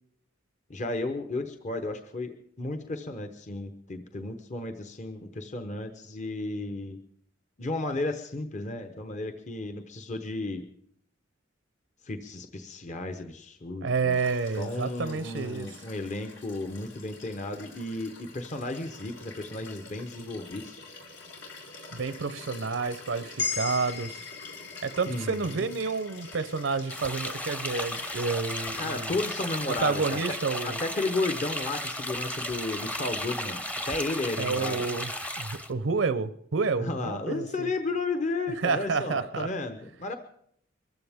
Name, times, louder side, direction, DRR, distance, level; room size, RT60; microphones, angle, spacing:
voice 1, 0.7-7.0 7.6-10.6 12.0-14.2 14.6-20.8 25.1-25.7 28.8-30.3 30.6-34.8 36.8-40.1, left 2 dB, 40° left, 0.9 m, -33 dB
voice 2, 13.8-15.7 21.9-24.2 24.8-29.2 29.7-30.8 34.4-35.1 35.4-37.7 38.6-39.5, right 4 dB, 75° right, 0.7 m, -29 dB
Liquid, 14.1-30.1 31.4-31.5, left 3 dB, 80° left, 4.0 m, -47 dB
sound 1, 23.4-27.6, left 5 dB, 65° left, 1.8 m, -38 dB
Small Water Spring, 26.9-35.7, left 1 dB, 5° left, 0.7 m, -34 dB
23.0 x 14.5 x 3.6 m
head